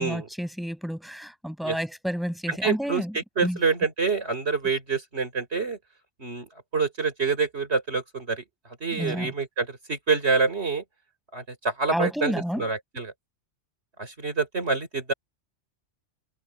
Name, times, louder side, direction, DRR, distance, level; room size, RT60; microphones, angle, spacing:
voice 1, 0.0-3.1 3.4-3.6 8.9-9.3 11.9-12.6, equal, ahead, 6.0 m, -30 dB
voice 2, 2.5-5.8 6.2-8.4 8.8-10.8 11.3-13.1 14.0-15.1, right 4 dB, 60° right, 4.3 m, -27 dB
omnidirectional pair, 1.2 m